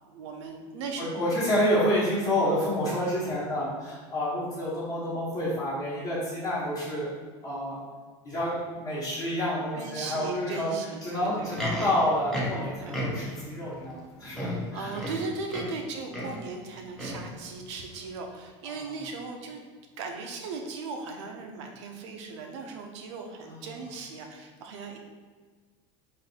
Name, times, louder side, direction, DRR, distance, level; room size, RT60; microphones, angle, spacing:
voice 1, 0.0-1.3 9.7-11.9 12.8-13.1 14.7-19.6 20.0-25.0, right 4 dB, 90° right, 3 dB, 0.8 m, -38 dB
voice 2, 1.0-7.1 7.4-7.8 8.2-10.7 11.0-14.9, left 1 dB, 25° left, -8 dB, 1.2 m, -28 dB
Livestock farm animals working animals, 11.3-13.5 14.0-14.1 14.3-15.8 16.1-16.4 17.0-17.3 18.0-18.1, left 1 dB, ahead, 0.6 m, -34 dB
4.1 x 2.6 x 4.3 m, 1.5 s
cardioid pair, 165°, 15 cm